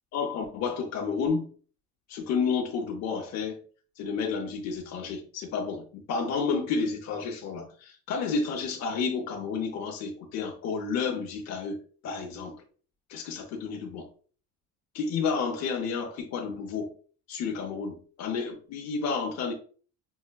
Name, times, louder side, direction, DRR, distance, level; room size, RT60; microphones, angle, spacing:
voice 1, 0.1-1.5 2.1-3.6 4.0-12.6 13.1-14.1 14.9-16.9 17.3-19.5, left 5 dB, 60° left, 0.7 m, -31 dB
5.5 x 2.1 x 2.2 m
cardioid pair, 130°, 30 cm